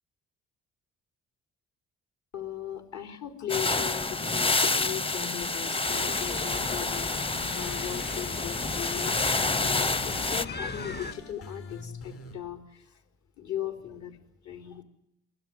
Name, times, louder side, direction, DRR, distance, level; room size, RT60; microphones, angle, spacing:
voice 1, 2.3-13.0 13.4-14.8, left 10 dB, 65° left, 5 dB, 4.3 m, -38 dB
sound 1, 3.5-10.4, left 3 dB, 20° left, 0.8 m, -28 dB
sound 2, 3.6-12.4, left 3 dB, 50° left, 7.7 m, -46 dB
sound 3, 5.8-11.1, left 4 dB, 35° left, 1.8 m, -38 dB
23.5 x 17.0 x 9.4 m, 0.76 s
cardioid pair, 90°, 30 cm